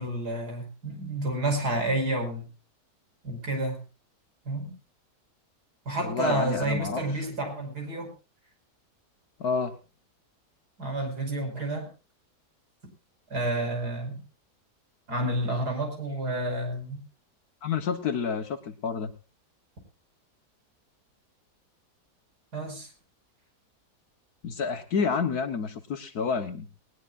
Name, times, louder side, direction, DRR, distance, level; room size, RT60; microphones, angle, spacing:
voice 1, 0.0-2.4 3.2-3.8 4.5-4.7 5.9-8.1 10.8-11.9 13.3-14.2 15.1-17.0 22.5-22.9, right 1 dB, 65° right, 4 dB, 5.9 m, -30 dB
voice 2, 6.0-7.0 9.4-9.8 17.6-19.1 24.4-26.7, left 5 dB, 65° left, 10 dB, 1.7 m, -29 dB
20.0 x 19.0 x 2.5 m, 0.32 s
omnidirectional pair, 1.8 m